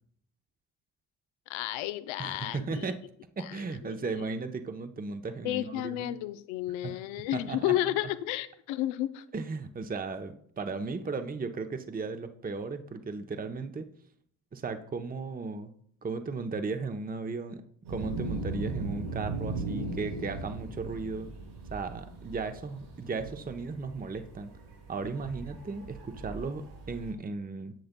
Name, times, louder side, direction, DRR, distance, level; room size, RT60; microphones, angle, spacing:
voice 1, 1.5-2.9 3.4-4.2 5.4-9.2, left 14 dB, 70° left, 13 dB, 0.7 m, -32 dB
voice 2, 2.2-3.0 3.4-6.1 6.8-7.0 7.3-7.7 9.3-13.9 14.5-15.7 16.0-21.3 21.7-24.5 24.9-27.7, right 4 dB, 20° right, 8 dB, 0.8 m, -36 dB
sound 1, 17.8-27.1, right 3 dB, 75° right, 3.6 m, -38 dB
10.5 x 7.6 x 2.2 m, 0.64 s
hypercardioid pair, 45°, 49 cm